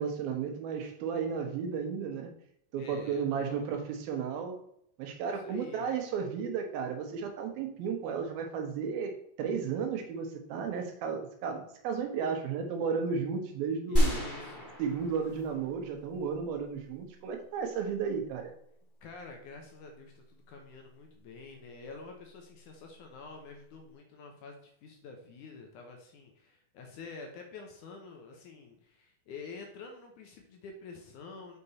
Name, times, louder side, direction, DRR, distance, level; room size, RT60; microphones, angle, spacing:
voice 1, 0.0-2.3 2.7-4.6 5.0-9.1 9.4-14.2 14.8-18.5, right 6 dB, 80° right, 4 dB, 2.9 m, -33 dB
voice 2, 2.8-3.7 5.4-5.9 13.9-14.7 19.0-31.6, left 4 dB, 70° left, 2 dB, 2.1 m, -48 dB
sound 1, 13.9-15.9 16.2-16.3, equal, 20° left, 1.4 m, -30 dB
6.8 x 5.2 x 4.1 m, 0.71 s
omnidirectional pair, 4.3 m